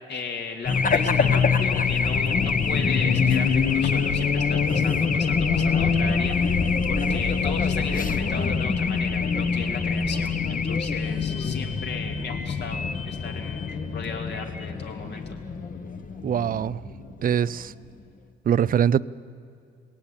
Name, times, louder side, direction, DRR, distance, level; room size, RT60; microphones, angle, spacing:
voice 1, 0.1-6.5 6.9-15.4, left 5 dB, 60° left, 3 dB, 2.9 m, -36 dB
Race car auto racing / Alarm, 0.7-17.6, left 5 dB, 45° left, 1.5 m, -24 dB
voice 2, 16.2-16.8 17.2-17.7 18.5-19.0, right 9 dB, 45° right, 19 dB, 0.5 m, -22 dB
20.0 x 17.5 x 8.8 m, 2.5 s
cardioid pair, 90°, 20 cm